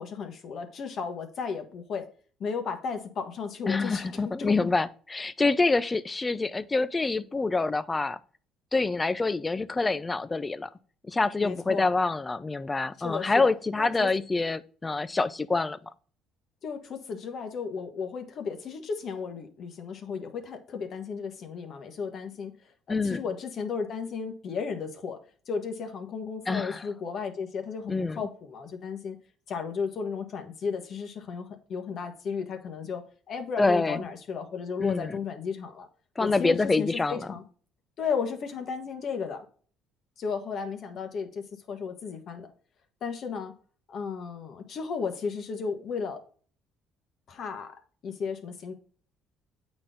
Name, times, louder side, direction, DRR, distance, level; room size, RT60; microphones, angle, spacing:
voice 1, 0.0-2.1 2.4-4.7 11.4-11.9 13.0-14.1 16.6-22.5 22.9-25.2 25.5-29.2 29.5-35.9 36.2-37.4 38.0-39.4 40.2-42.5 43.0-43.5 43.9-46.2 47.3-47.7 48.0-48.7, left 5 dB, 50° left, 1.5 m, -34 dB
voice 2, 3.7-8.2 8.7-10.7 11.1-15.8 22.9-23.2 26.5-26.8 27.9-28.2 33.6-34.1 34.8-35.2 36.2-37.3, left 3 dB, 15° left, 0.5 m, -26 dB
8.7 x 4.3 x 3.8 m
cardioid pair, 125°, 0 cm